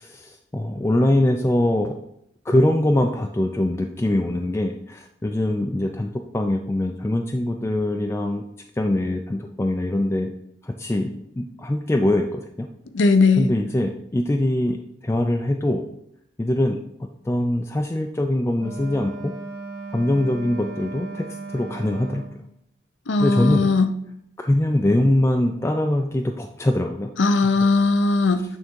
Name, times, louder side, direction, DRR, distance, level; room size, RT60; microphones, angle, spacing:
voice 1, 0.0-1.9 2.5-8.4 8.8-10.3 10.6-12.7 13.4-15.8 16.4-16.8 17.3-19.3 19.9-22.2 23.2-23.7 24.4-27.1, left 1 dB, 15° left, 3 dB, 0.3 m, -23 dB
voice 2, 12.9-13.5 23.1-23.9 27.2-28.4, left 3 dB, 80° left, 10 dB, 0.6 m, -18 dB
Wind instrument woodwind instrument, 18.6-22.4, right 3 dB, 80° right, 1.2 m, -36 dB
8.9 x 3.5 x 4.5 m, 0.73 s
head